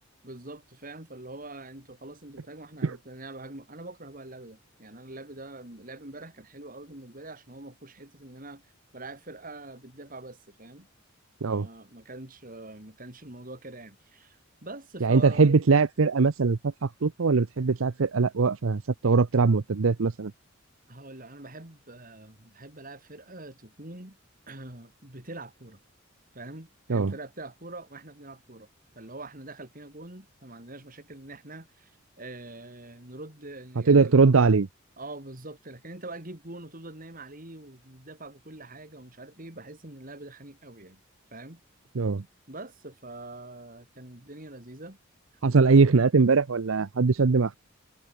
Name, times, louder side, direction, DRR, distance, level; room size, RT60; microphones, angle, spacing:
voice 1, 0.2-8.6 8.9-10.9 11.4-15.5 20.9-24.2 24.5-25.8 26.3-28.7 28.9-34.2 35.0-41.0 41.3-41.6 42.5-45.0 45.6-45.8, right 2 dB, 45° right, 4.1 m, -44 dB
voice 2, 15.0-20.3 26.9-27.1 33.9-34.7 42.0-42.2 45.4-47.6, right 4 dB, 80° right, 0.7 m, -21 dB
head